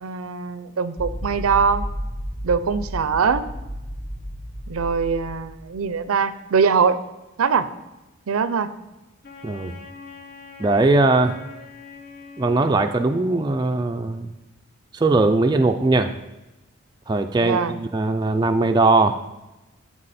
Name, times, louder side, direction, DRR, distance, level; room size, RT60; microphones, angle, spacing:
voice 1, 0.0-1.9 2.4-3.5 4.7-7.0 7.4-7.7 8.3-8.7 17.4-17.8, right 5 dB, 85° right, 13 dB, 0.5 m, -22 dB
sound 1, 1.0-5.8, equal, 20° left, 2.2 m, -32 dB
Wind instrument woodwind instrument, 9.2-13.6, left 3 dB, 45° left, 0.8 m, -42 dB
voice 2, 9.4-9.8 10.6-11.4 12.4-14.3 14.9-16.1 17.1-19.2, right 2 dB, 20° right, 6 dB, 0.3 m, -20 dB
12.5 x 4.8 x 4.2 m, 1.0 s
head